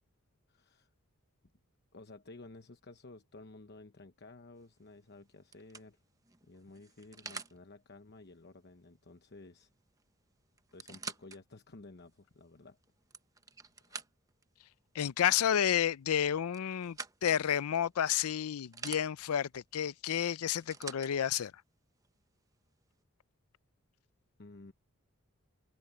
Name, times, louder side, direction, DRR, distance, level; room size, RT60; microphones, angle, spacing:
voice 1, 0.5-0.9 1.9-6.0 6.4-9.7 10.7-12.8 13.8-14.0 24.4-24.7, left 2 dB, 50° left, 1.0 m, -53 dB
sound 1, 4.6-4.9 5.5-7.6 9.6-9.7 10.0-10.1 10.6-11.4 12.0-12.1 12.8-14.4 16.1-17.4 18.1-19.0 20.3-21.1 22.0-22.1, right 4 dB, 15° right, 0.9 m, -46 dB
voice 2, 14.9-21.5, left 9 dB, 85° left, 0.4 m, -31 dB
head